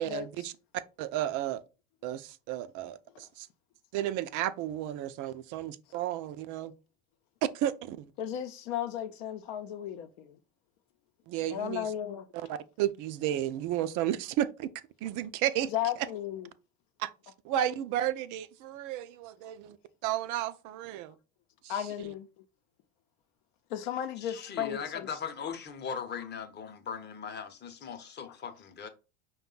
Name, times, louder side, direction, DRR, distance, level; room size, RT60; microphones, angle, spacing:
voice 1, 0.0-1.6 2.0-3.5 3.9-6.7 7.5-8.1 11.3-11.9 12.3-14.7 15.0-16.1 17.0-17.1 17.4-19.8 20.0-21.1 21.6-21.8, right 12 dB, 45° right, 0.5 m, -33 dB
voice 2, 8.2-10.4 11.5-12.3 15.7-16.5 21.7-22.3 23.7-25.1, left 10 dB, 60° left, 0.7 m, -35 dB
voice 3, 24.2-28.9, left 6 dB, 25° left, 0.8 m, -39 dB
5.2 x 2.3 x 3.8 m
hypercardioid pair, 90°, 42 cm